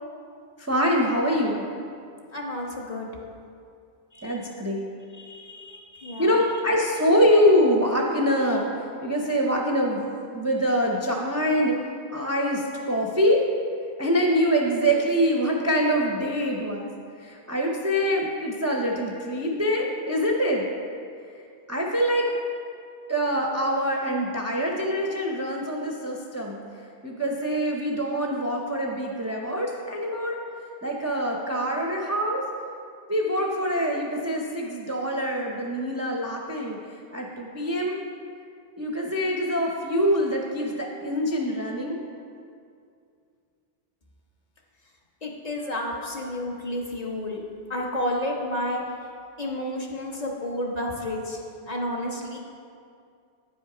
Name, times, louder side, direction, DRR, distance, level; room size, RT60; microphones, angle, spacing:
voice 1, 0.6-1.6 4.2-4.9 6.2-10.1 10.3-11.8 12.1-13.4 14.0-16.9 17.2-20.6 21.7-22.3 23.1-26.6 27.0-30.4 30.8-32.4 33.1-36.8 37.1-38.0 38.8-42.0, equal, 20° right, -1 dB, 0.4 m, -24 dB
voice 2, 2.3-3.2 4.1-4.4 5.1-6.3 45.2-47.4 47.7-48.8 49.4-52.4, left 1 dB, 40° left, -1 dB, 0.9 m, -31 dB
8.7 x 5.6 x 4.9 m, 2.4 s
omnidirectional pair, 1.1 m